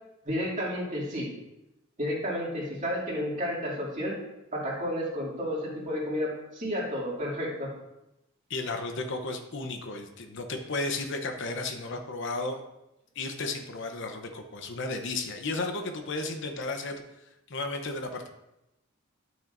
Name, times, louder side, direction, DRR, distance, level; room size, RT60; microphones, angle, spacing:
voice 1, 0.2-1.3 2.0-4.1 4.5-7.7, equal, 35° right, -5 dB, 2.6 m, -31 dB
voice 2, 8.5-12.6 13.2-17.0 17.5-18.3, left 2 dB, 60° left, 5 dB, 0.8 m, -33 dB
12.0 x 6.2 x 2.6 m, 0.92 s
head